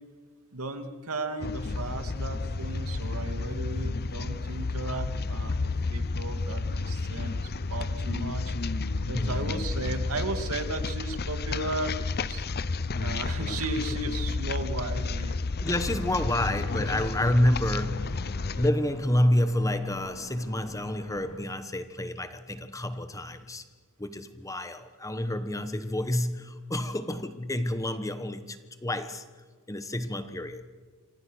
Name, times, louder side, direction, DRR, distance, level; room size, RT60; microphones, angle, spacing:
voice 1, 0.5-8.5 9.0-12.4 13.0-15.4 16.2-16.3, right 2 dB, 75° right, 2.4 m, -35 dB
sound 1, 1.4-18.7, left 3 dB, 45° left, 0.7 m, -31 dB
voice 2, 9.1-9.6 15.6-18.0 18.5-23.6 24.0-29.2 29.7-30.6, left 1 dB, 15° left, 1.3 m, -28 dB
sound 2, 15.6-21.4, left 1 dB, 85° left, 3.4 m, -46 dB
27.0 x 26.0 x 6.4 m
head